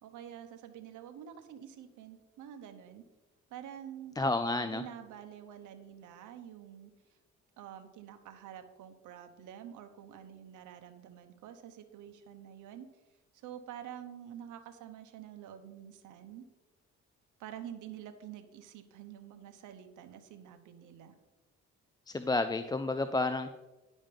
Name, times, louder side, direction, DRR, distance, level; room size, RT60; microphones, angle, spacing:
voice 1, 0.0-3.0 3.5-4.2 4.5-6.9 7.6-12.9 13.4-16.4 17.4-21.1, right 10 dB, 85° right, 8 dB, 1.0 m, -48 dB
voice 2, 4.2-4.8 22.1-23.5, left 2 dB, 15° left, 9 dB, 0.4 m, -30 dB
10.5 x 5.2 x 5.2 m, 1.1 s
cardioid pair, 90°, 30 cm